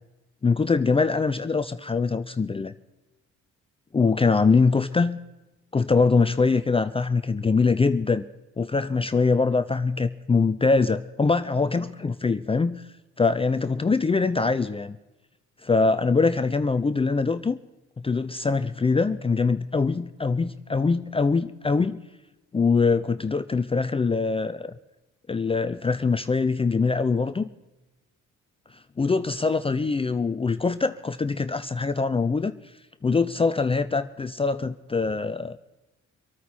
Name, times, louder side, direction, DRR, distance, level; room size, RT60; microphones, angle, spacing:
voice 1, 0.4-2.7 3.9-5.2 5.7-8.2 8.6-12.8 13.2-15.0 15.6-17.6 18.0-22.0 22.5-24.7 25.3-27.5 29.0-32.5 33.0-35.6, left 4 dB, 20° left, 11 dB, 0.5 m, -23 dB
26.5 x 9.2 x 4.3 m, 1.1 s
cardioid pair, 90°, 30 cm